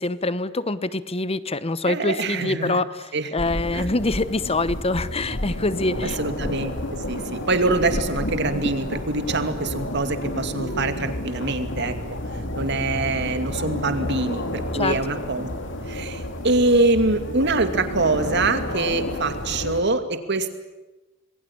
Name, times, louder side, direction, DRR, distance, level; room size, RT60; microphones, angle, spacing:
voice 1, 0.0-6.2 14.8-15.0, left 2 dB, 30° left, 15 dB, 1.1 m, -25 dB
voice 2, 1.8-2.8 3.1-3.3 3.7-3.9 6.0-11.9 12.6-15.5 15.9-20.5, right 2 dB, 60° right, 8 dB, 2.6 m, -24 dB
sound 1, 3.4-19.8, left 1 dB, 65° left, 3.1 m, -30 dB
27.0 x 21.5 x 8.8 m, 1.1 s
head